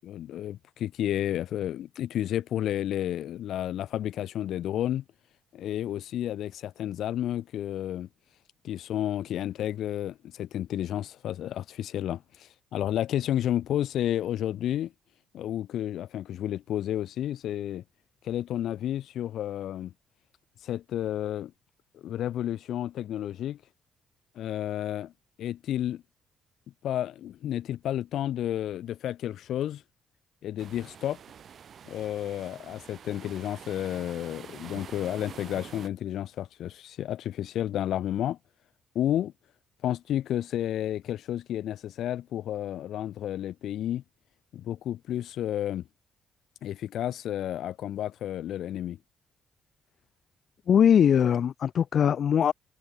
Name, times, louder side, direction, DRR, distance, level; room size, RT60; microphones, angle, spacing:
voice 1, 0.0-5.0 5.5-8.1 8.6-14.9 15.3-17.8 18.2-19.9 20.6-21.5 21.9-23.6 24.3-25.1 25.4-26.0 26.8-29.8 30.4-31.2 31.9-38.4 38.9-39.3 39.8-44.0 44.5-45.8 46.6-49.0, left 11 dB, 75° left, 6.2 m, -31 dB
sound 1, 30.6-35.9, right 8 dB, 55° right, 5.9 m, -47 dB
voice 2, 50.7-52.5, left 8 dB, 60° left, 0.7 m, -21 dB
cardioid pair, 90°, 0 cm